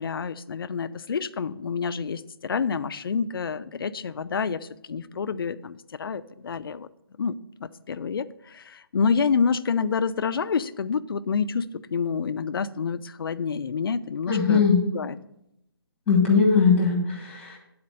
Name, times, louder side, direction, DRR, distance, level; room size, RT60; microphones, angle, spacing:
voice 1, 0.0-6.9 7.2-14.6 14.9-15.2, left 5 dB, 65° left, 12 dB, 0.5 m, -28 dB
voice 2, 14.3-14.8 16.1-17.6, left 5 dB, 10° left, -1 dB, 1.6 m, -20 dB
8.5 x 4.3 x 6.9 m, 0.81 s
hypercardioid pair, 165°, 13 cm